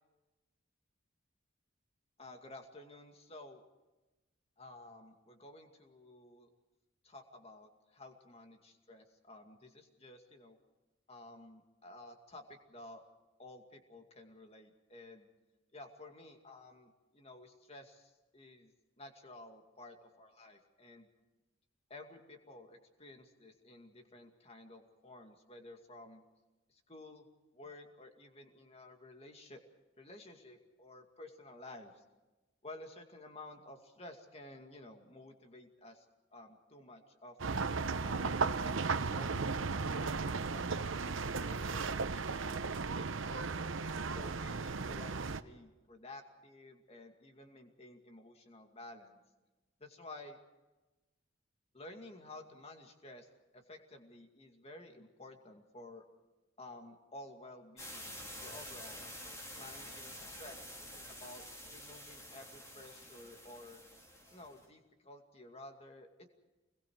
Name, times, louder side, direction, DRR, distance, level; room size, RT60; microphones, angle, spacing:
voice 1, 2.2-3.6 4.6-6.5 7.0-10.6 11.1-13.0 13.4-15.3 15.7-21.1 21.9-26.2 26.7-27.2 27.5-29.6 30.0-32.0 32.6-36.0 36.3-37.4 38.0-40.9 41.4-43.7 44.1-49.2 49.8-50.4 51.7-53.3 53.5-56.0 56.6-59.0 59.6-60.6 60.9-61.4 61.7-63.8 64.3-66.3, left 2 dB, 30° left, 4 dB, 2.4 m, -53 dB
sound 1, 37.4-45.4, right 4 dB, 75° right, 0.9 m, -35 dB
sound 2, 57.8-64.6, equal, 15° left, 3.4 m, -49 dB
29.0 x 22.0 x 4.8 m, 1.1 s
head